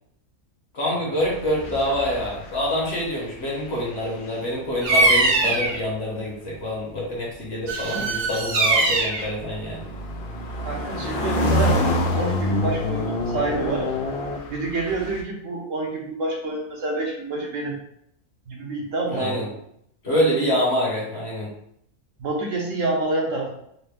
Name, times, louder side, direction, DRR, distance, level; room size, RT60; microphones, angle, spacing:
voice 1, 0.7-9.9 19.1-19.4 20.0-21.5, equal, 50° left, -3 dB, 1.1 m, -26 dB
sound 1, 1.2-3.1 3.4-4.7 5.7-5.9 8.0-15.2, left 1 dB, 85° left, 0.4 m, -27 dB
Bird vocalization bird call bird song, 4.8-5.8 7.7-9.3, right 2 dB, 80° right, 0.4 m, -21 dB
voice 2, 10.6-11.8 12.1-13.9 14.5-17.8 18.5-19.3 22.2-23.5, right 2 dB, 65° right, -1 dB, 1.1 m, -27 dB
4.0 x 2.1 x 3.3 m, 0.72 s
omnidirectional pair, 1.5 m